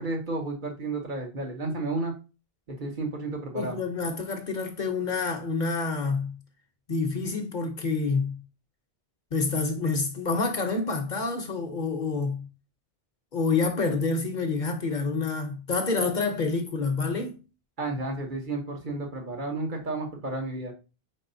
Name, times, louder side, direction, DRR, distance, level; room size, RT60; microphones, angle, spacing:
voice 1, 0.0-2.1 2.7-3.8 17.8-20.7, right 2 dB, 55° right, 1.1 m, -32 dB
voice 2, 3.5-6.3 6.9-8.3 9.3-12.4 13.3-17.4, left 4 dB, 50° left, 0.7 m, -28 dB
4.7 x 3.7 x 2.6 m
omnidirectional pair, 1.0 m